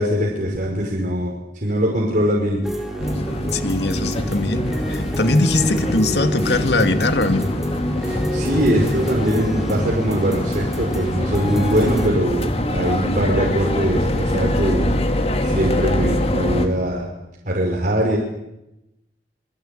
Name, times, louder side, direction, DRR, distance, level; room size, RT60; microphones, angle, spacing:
voice 1, 0.0-2.6 8.0-15.0 15.4-17.1 17.5-18.2, equal, 45° right, -1 dB, 5.4 m, -22 dB
sound 1, 2.6-12.1, equal, ahead, 4.5 m, -29 dB
sound 2, 3.0-16.7, left 1 dB, 35° left, 3.0 m, -24 dB
voice 2, 3.5-7.5, left 2 dB, 70° left, 8 dB, 2.4 m, -21 dB
27.0 x 21.5 x 9.1 m, 0.89 s
head